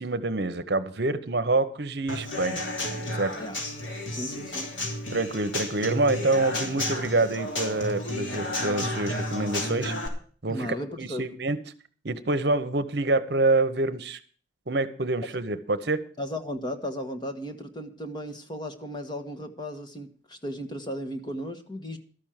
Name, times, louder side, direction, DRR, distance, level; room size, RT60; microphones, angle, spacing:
voice 1, 0.0-2.6 3.1-3.3 5.1-9.9 10.4-10.7 11.0-11.6 12.0-14.2 14.7-16.0, right 2 dB, 60° right, 11 dB, 0.9 m, -26 dB
Human voice / Acoustic guitar / Drum, 2.1-10.1, left 1 dB, 80° left, 3.2 m, -32 dB
voice 2, 4.1-4.7 10.5-11.3 16.2-22.0, equal, 25° left, 7 dB, 1.3 m, -35 dB
13.0 x 6.3 x 8.9 m, 0.44 s
head